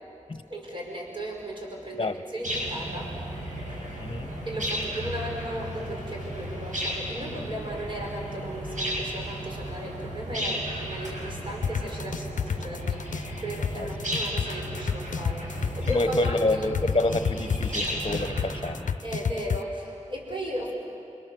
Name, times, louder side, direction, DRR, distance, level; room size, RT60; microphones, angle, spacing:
voice 1, 0.5-3.1 4.4-16.4 19.0-20.7, right 1 dB, 40° right, -1 dB, 5.2 m, -36 dB
sound 1, 2.4-18.8, equal, 75° right, 6.5 m, -34 dB
voice 2, 4.0-4.3 13.7-13.9 15.8-18.9, left 2 dB, 40° left, 10 dB, 1.2 m, -27 dB
sound 2, 11.6-19.6, left 6 dB, 70° left, 0.6 m, -28 dB
26.5 x 26.5 x 7.1 m, 2.6 s
wide cardioid pair, 65°, 13 cm